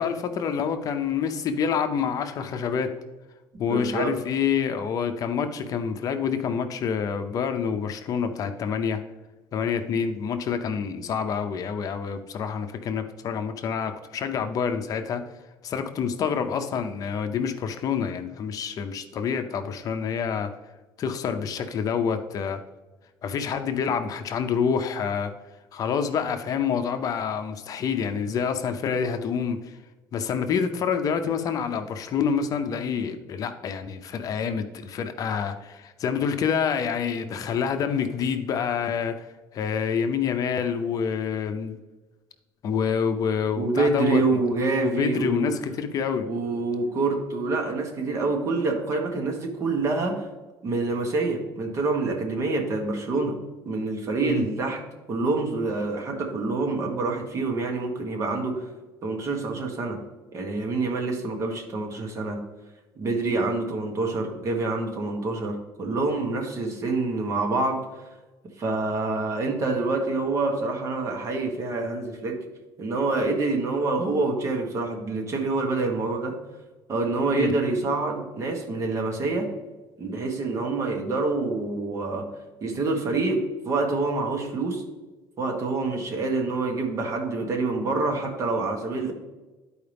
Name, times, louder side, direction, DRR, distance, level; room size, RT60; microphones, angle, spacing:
voice 1, 0.0-3.0 3.6-9.0 9.5-15.3 15.6-20.5 21.0-22.6 23.2-25.3 25.7-29.7 30.1-39.3 39.5-41.8 42.6-44.2 44.8-46.3 54.2-54.5 77.4-77.6, left 6 dB, 45° left, 7 dB, 0.6 m, -27 dB
voice 2, 3.7-4.2 43.6-45.5 46.2-50.2 50.6-53.4 53.6-54.8 55.1-58.6 59.0-60.0 60.3-62.4 62.9-67.8 68.6-72.5 72.8-76.4 76.9-79.5 80.0-82.3 82.6-84.8 85.4-89.1, right 3 dB, 35° right, 2 dB, 1.5 m, -26 dB
12.0 x 4.7 x 3.4 m, 1.2 s
cardioid pair, 145°, 8 cm